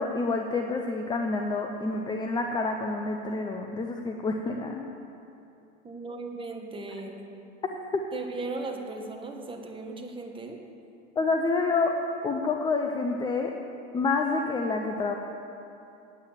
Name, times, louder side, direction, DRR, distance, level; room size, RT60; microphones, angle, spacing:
voice 1, 0.0-4.9 7.6-7.8 11.2-13.5 13.9-15.1, left 3 dB, 10° left, 3 dB, 0.5 m, -28 dB
voice 2, 5.8-7.2 8.1-10.6, right 3 dB, 15° right, 2 dB, 1.2 m, -37 dB
8.8 x 8.7 x 7.3 m, 2.7 s
hypercardioid pair, 110°, 37 cm